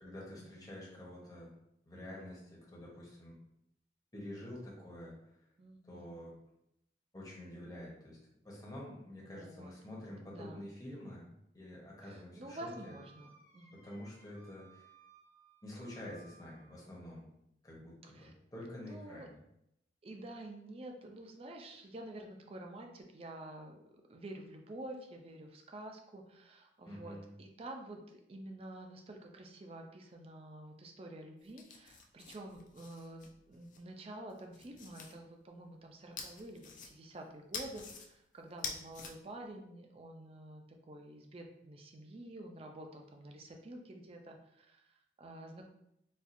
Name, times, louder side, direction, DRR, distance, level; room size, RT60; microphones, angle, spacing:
voice 1, 0.0-1.5 1.8-3.4 4.1-5.2 5.8-6.3 7.1-8.2 8.4-12.9 13.7-14.8 15.6-17.3 17.6-19.4 26.8-27.3, left 1 dB, 20° left, -4 dB, 0.8 m, -48 dB
voice 2, 5.6-6.2 9.2-10.7 12.0-13.8 18.1-18.3 18.7-19.3 20.0-23.8 24.1-45.6, right 1 dB, 30° right, 2 dB, 0.4 m, -49 dB
Wind instrument woodwind instrument, 12.6-16.9, right 4 dB, 65° left, 1.0 m, -62 dB
sound 1, 31.4-33.8 34.3-35.1 36.2-37.2 37.5-38.1 38.5-39.1, left 5 dB, 45° left, 0.4 m, -46 dB
4.2 x 2.3 x 2.5 m, 0.79 s
head